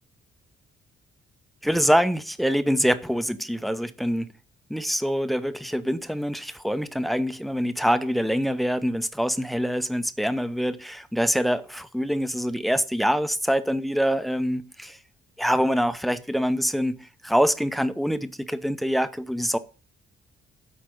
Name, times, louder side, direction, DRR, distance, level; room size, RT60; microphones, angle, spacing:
voice 1, 1.6-4.3 4.7-15.0 15.4-17.0 17.2-19.6, equal, ahead, 0.7 m, -25 dB
8.3 x 5.1 x 6.5 m
cardioid pair, 90°, 20 cm